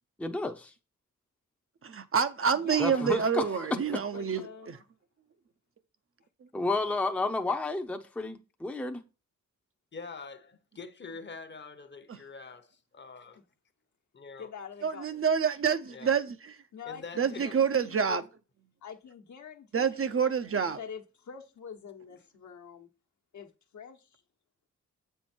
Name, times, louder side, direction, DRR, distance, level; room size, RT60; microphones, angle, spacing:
voice 1, 0.2-0.7 2.8-3.4 6.5-9.0, left 2 dB, 5° left, 0.6 m, -31 dB
voice 2, 1.8-4.8 14.8-16.5 17.2-18.2 19.7-20.8, right 6 dB, 45° right, 0.6 m, -27 dB
voice 3, 2.5-3.6 3.9-4.7 14.4-15.3 16.7-18.2 18.8-20.3 20.7-22.9 23.3-24.2, left 7 dB, 65° left, 1.1 m, -46 dB
voice 4, 9.9-12.6 13.0-13.4 14.1-14.5 15.9-16.2 16.8-17.6 22.1-22.2, left 4 dB, 35° left, 0.8 m, -44 dB
7.9 x 4.5 x 4.4 m
wide cardioid pair, 130°, 31 cm